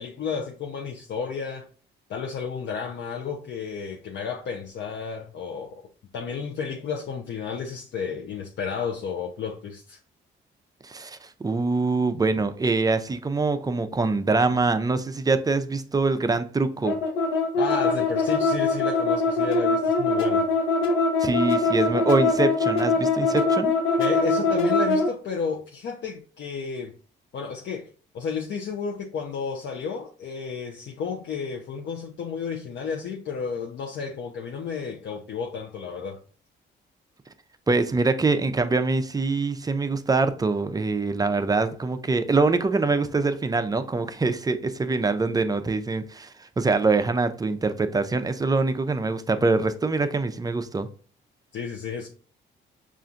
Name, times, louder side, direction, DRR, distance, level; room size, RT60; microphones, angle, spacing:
voice 1, 0.0-1.7 2.1-5.8 6.1-10.0 17.5-20.5 24.0-26.9 27.3-27.9 28.1-36.2 51.5-52.1, left 6 dB, 65° left, 0.6 m, -32 dB
voice 2, 10.8-17.0 21.2-23.7 37.7-50.9, right 3 dB, 20° right, 0.4 m, -24 dB
sound 1, 16.8-25.1, left 3 dB, 80° left, 1.0 m, -22 dB
5.5 x 2.5 x 2.5 m
cardioid pair, 90°, 20 cm